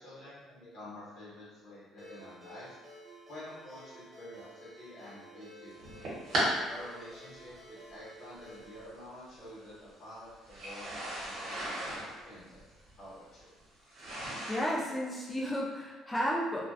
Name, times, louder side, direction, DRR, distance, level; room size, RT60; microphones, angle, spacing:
voice 1, 0.0-2.8 3.3-6.0 6.7-12.7 13.0-13.5, left 1 dB, 50° left, -10 dB, 0.9 m, -49 dB
Ringtone, 2.0-8.8, equal, 30° right, 0.6 m, -53 dB
sound 1, 5.7-6.5 7.5-7.6 8.8-8.9 10.4-14.8, right 1 dB, 55° right, 0.9 m, -36 dB
voice 2, 14.5-16.6, equal, 10° left, -3 dB, 0.4 m, -32 dB
2.4 x 2.1 x 2.4 m, 1.3 s
cardioid pair, 140°, 0 cm